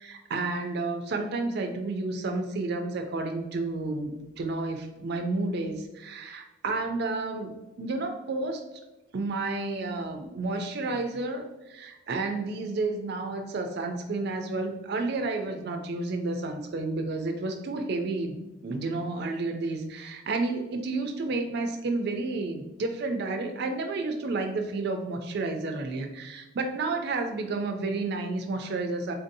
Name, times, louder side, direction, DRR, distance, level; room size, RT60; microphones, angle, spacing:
voice 1, 0.0-8.6 9.1-18.4 18.6-29.1, right 3 dB, 50° right, 5 dB, 0.4 m, -31 dB
3.8 x 2.6 x 2.6 m, 1.0 s
head